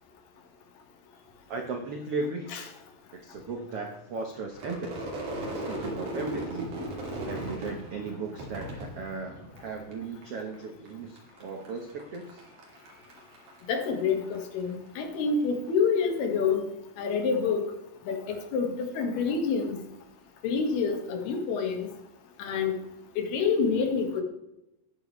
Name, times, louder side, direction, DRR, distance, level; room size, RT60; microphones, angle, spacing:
voice 1, 1.5-2.6 3.1-5.2 5.5-6.7 7.0-12.4, right 3 dB, 80° right, 3 dB, 1.3 m, -36 dB
Crowd / Fireworks, 4.5-9.9 10.2-10.9 11.2-14.7, right 1 dB, 55° right, 4.2 m, -37 dB
voice 2, 13.7-16.6 17.0-17.7 18.1-19.8 20.4-21.9 22.4-22.8 23.2-24.2, left 5 dB, 80° left, 4 dB, 3.7 m, -27 dB
13.5 x 11.0 x 3.2 m, 0.88 s
omnidirectional pair, 4.6 m